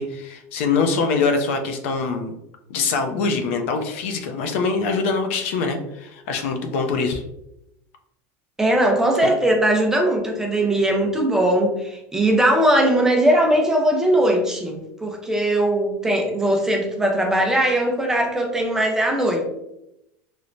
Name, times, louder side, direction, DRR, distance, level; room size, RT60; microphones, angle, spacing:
voice 1, 0.0-2.3 2.7-7.2 9.2-9.3, left 4 dB, 75° left, 6 dB, 0.4 m, -23 dB
voice 2, 8.6-19.4, right 1 dB, 5° right, 1 dB, 0.4 m, -20 dB
3.0 x 2.1 x 2.5 m, 0.85 s
supercardioid pair, 155°, 7 cm